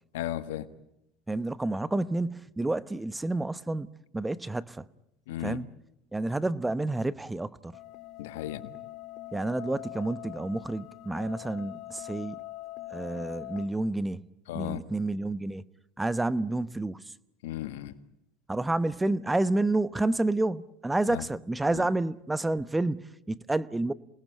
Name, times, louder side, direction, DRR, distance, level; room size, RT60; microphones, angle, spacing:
voice 1, 0.1-0.7 5.3-5.6 8.2-8.7 14.5-14.8 17.4-17.9 21.1-21.2 21.7-21.9, left 14 dB, 80° left, 1.5 m, -35 dB
voice 2, 1.3-3.9 4.1-4.9 5.4-5.7 6.1-7.8 9.3-12.4 12.9-14.2 14.5-15.6 16.0-17.0 18.5-23.9, right 2 dB, 10° right, 0.9 m, -29 dB
sound 1, 7.7-13.7, left 16 dB, 55° left, 1.8 m, -43 dB
28.0 x 19.5 x 9.0 m
supercardioid pair, 95°, 0 cm